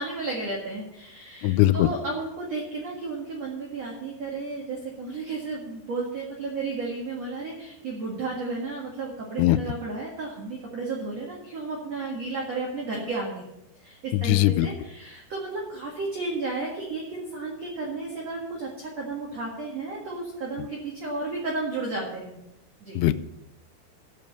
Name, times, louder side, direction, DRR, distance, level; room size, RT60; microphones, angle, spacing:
voice 1, 0.0-13.4 13.8-22.4 22.8-23.0, right 3 dB, 55° right, -2 dB, 2.0 m, -33 dB
voice 2, 1.4-1.9 9.4-9.6 14.1-14.7 23.0-23.1, left 16 dB, 85° left, 12 dB, 2.9 m, -20 dB
14.0 x 5.3 x 7.9 m, 0.89 s
omnidirectional pair, 5.5 m